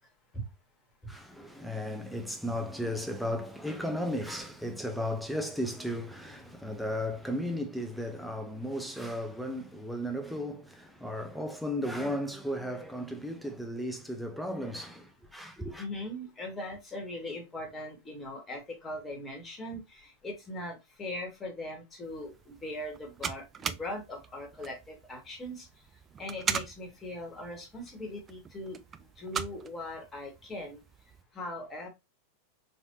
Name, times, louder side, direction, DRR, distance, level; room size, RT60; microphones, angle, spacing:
voice 1, 1.1-15.8, equal, ahead, 0.8 m, -35 dB
voice 2, 15.8-25.7 26.2-28.8 29.2-30.8 31.3-31.9, left 1 dB, 15° left, 1.7 m, -40 dB
sound 1, 22.0-31.2, right 7 dB, 25° right, 0.3 m, -40 dB
4.3 x 3.5 x 2.7 m
figure-of-eight pair, 90°, 0 cm